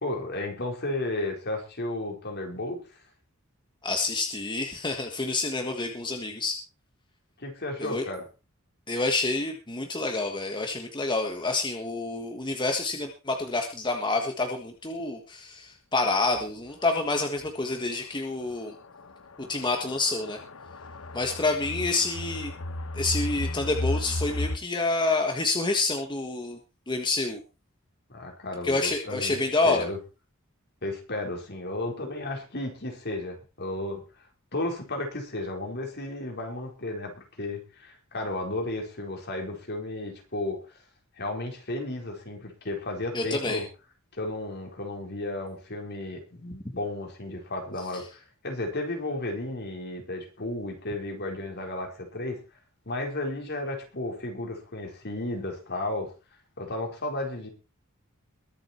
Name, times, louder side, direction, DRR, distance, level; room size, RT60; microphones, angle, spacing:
voice 1, 0.0-2.8 7.4-8.2 28.1-30.0 30.8-34.3 34.5-40.8 41.2-43.7 44.1-52.4 52.9-56.1 56.6-57.5, left 2 dB, 50° left, 2 dB, 4.6 m, -33 dB
voice 2, 3.8-6.6 7.8-8.0 8.9-18.7 19.4-20.4 21.1-22.5 22.9-26.6 26.9-27.4 28.6-29.8 43.1-43.6, left 3 dB, 20° left, 4 dB, 1.5 m, -28 dB
sound 1, 16.4-16.5 16.8-16.9 17.4-17.5 18.4-24.6, left 1 dB, 75° left, 1.2 m, -34 dB
22.0 x 7.7 x 4.5 m, 0.32 s
head